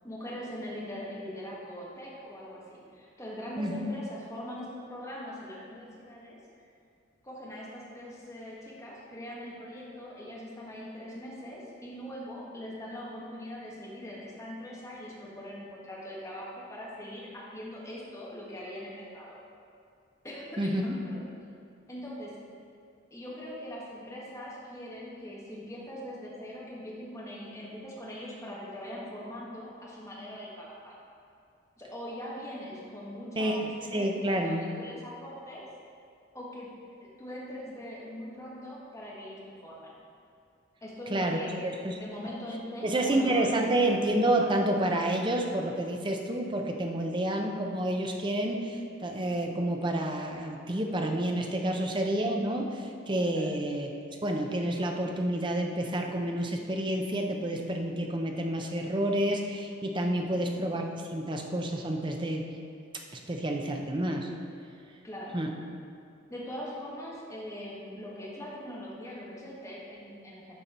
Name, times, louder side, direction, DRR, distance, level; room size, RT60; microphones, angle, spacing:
voice 1, 0.0-6.7 7.2-19.4 20.2-20.5 20.8-21.3 21.9-22.3 23.1-30.9 31.8-35.6 36.3-36.7 37.0-40.0 40.8-43.6 51.7-51.8 53.3-53.5 60.2-60.4 65.0-65.4 66.3-70.5, equal, 15° left, -6 dB, 1.5 m, -42 dB
voice 2, 20.6-21.0 33.4-34.7 41.1-41.4 41.8-42.0 42.8-53.9 54.2-62.5 63.1-64.3 65.3-65.5, right 1 dB, 25° right, 2 dB, 0.6 m, -29 dB
12.0 x 4.4 x 4.3 m, 2.4 s
head